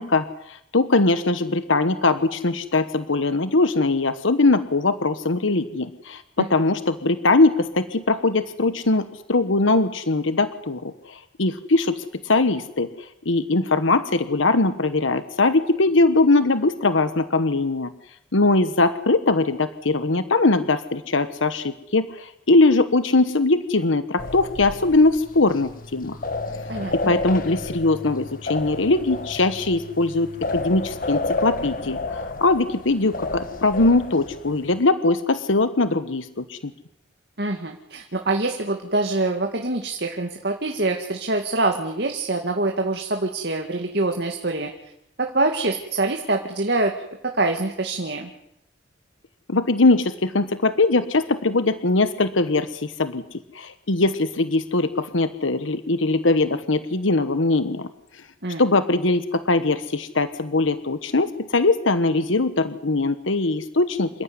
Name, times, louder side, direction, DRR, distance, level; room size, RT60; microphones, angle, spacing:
voice 1, 0.0-17.9 18.3-26.2 27.0-36.7 49.5-57.9 58.6-64.1, left 2 dB, 80° left, 11 dB, 1.2 m, -21 dB
sound 1, 24.2-34.8, left 2 dB, 45° left, 1.6 m, -31 dB
voice 2, 26.7-27.1 37.4-44.7 45.2-46.9 47.2-48.3 58.4-58.7, right 2 dB, 55° right, 3 dB, 2.2 m, -25 dB
28.0 x 15.5 x 9.7 m, 0.81 s
head